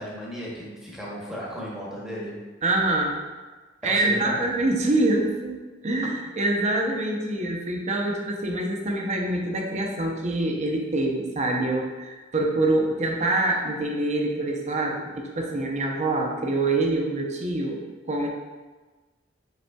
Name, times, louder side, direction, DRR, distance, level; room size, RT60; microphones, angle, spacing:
voice 1, 0.0-2.4 3.8-4.5, equal, 5° right, -5 dB, 1.0 m, -35 dB
voice 2, 2.6-3.2 3.8-5.6 5.8-17.8 18.1-18.3, right 2 dB, 35° right, 1 dB, 0.6 m, -25 dB
5.2 x 4.0 x 2.3 m, 1.3 s
head